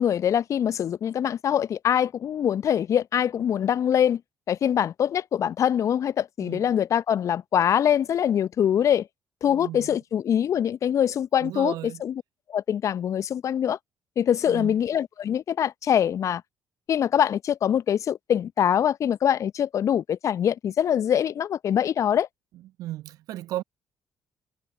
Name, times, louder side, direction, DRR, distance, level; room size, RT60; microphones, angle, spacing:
voice 1, 0.0-4.2 4.5-9.1 9.4-11.7 12.0-12.1 12.5-13.8 14.2-16.4 16.9-22.3, left 9 dB, 50° left, 0.9 m, -23 dB
voice 2, 9.5-9.9 11.4-12.0 14.5-14.7 22.8-23.6, right 14 dB, 60° right, 1.1 m, -34 dB
figure-of-eight pair, 45°, 7 cm